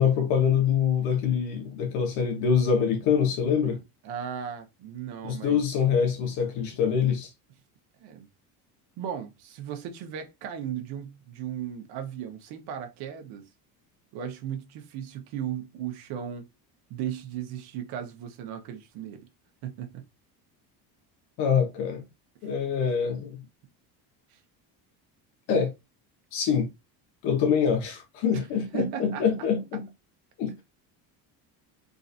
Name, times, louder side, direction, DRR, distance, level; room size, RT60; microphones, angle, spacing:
voice 1, 0.0-3.8 5.2-7.3 21.4-22.0 22.4-23.4 25.5-25.7 26.3-26.7 27.2-29.9 30.4-30.6, left 7 dB, 70° left, 1.2 m, -25 dB
voice 2, 4.0-5.6 8.0-8.3 9.0-13.4 14.1-16.5 16.9-19.3 19.6-20.0 24.3-24.4 28.3-28.4 28.7-29.2, right 9 dB, 70° right, 1.1 m, -36 dB
3.8 x 2.6 x 2.6 m
cardioid pair, 130°, 41 cm